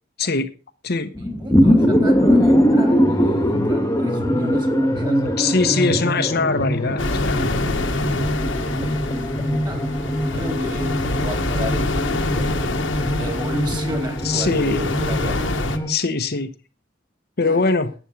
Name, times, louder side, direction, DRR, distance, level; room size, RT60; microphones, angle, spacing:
voice 1, 0.2-0.5 0.8-1.1 5.4-7.6 14.2-14.8 15.9-16.5 17.4-17.9, left 4 dB, 55° left, 1.0 m, -22 dB
sound 1, 1.1-15.9, equal, 15° left, 1.6 m, -21 dB
voice 2, 1.1-5.6 8.8-9.3 9.6-10.0 10.3-15.6 17.4-17.6, equal, 25° right, 3.7 m, -33 dB
sound 2, 7.0-15.8, left 2 dB, 75° left, 1.4 m, -26 dB
11.5 x 9.0 x 5.8 m
head